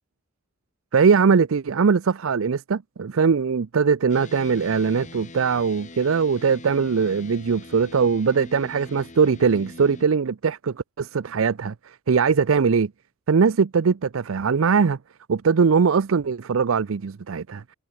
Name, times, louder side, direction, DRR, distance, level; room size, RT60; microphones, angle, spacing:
voice 1, 0.9-12.9 13.3-15.0 15.3-17.6, right 5 dB, 90° right, 0.5 m, -21 dB
sound 1, 4.1-10.0, left 2 dB, 40° left, 1.6 m, -43 dB
head